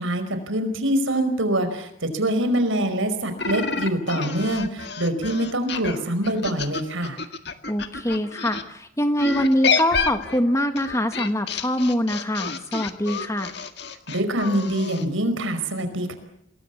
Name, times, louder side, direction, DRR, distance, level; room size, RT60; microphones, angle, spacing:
voice 1, 0.0-7.2 14.1-16.1, right 1 dB, 85° right, 9 dB, 5.0 m, -24 dB
sound 1, 3.4-8.6 9.2-15.1, left 5 dB, 60° left, 1.7 m, -29 dB
voice 2, 7.7-13.5, equal, 15° left, 7 dB, 1.5 m, -24 dB
28.0 x 21.5 x 8.4 m, 0.73 s
head